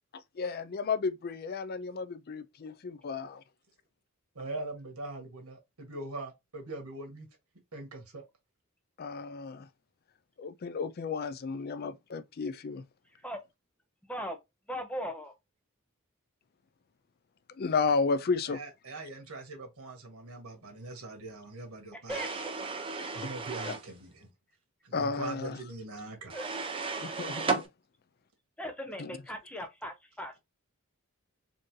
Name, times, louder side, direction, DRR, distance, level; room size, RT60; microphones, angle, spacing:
voice 1, 0.4-3.4 9.0-9.7 10.4-12.8 17.6-18.6 23.7-23.8 24.9-25.6 27.0-27.7 29.0-29.1, left 4 dB, 45° left, 0.4 m, -32 dB
voice 2, 4.3-7.3 7.7-8.2 18.5-22.2 23.1-24.3 24.8-26.7, right 2 dB, 85° right, 1.6 m, -42 dB
voice 3, 14.7-15.3 22.1-22.3 26.3-26.5 28.6-30.4, equal, 5° left, 0.7 m, -38 dB
sound 1, 22.1-23.9 26.3-27.7, right 4 dB, 25° right, 0.7 m, -34 dB
4.4 x 2.7 x 3.1 m
head